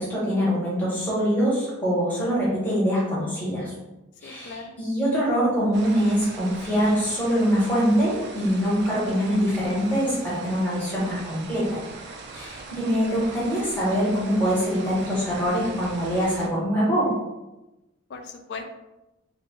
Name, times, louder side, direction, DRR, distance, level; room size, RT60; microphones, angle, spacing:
voice 1, 0.0-3.7 4.2-11.8 12.3-17.2, equal, 10° left, -7 dB, 0.9 m, -24 dB
voice 2, 4.2-4.8 12.6-12.9 18.1-18.6, left 4 dB, 55° left, 5 dB, 0.3 m, -39 dB
sound 1, 5.7-16.5, right 3 dB, 55° right, 0.3 m, -41 dB
2.7 x 2.1 x 2.9 m, 1.0 s
head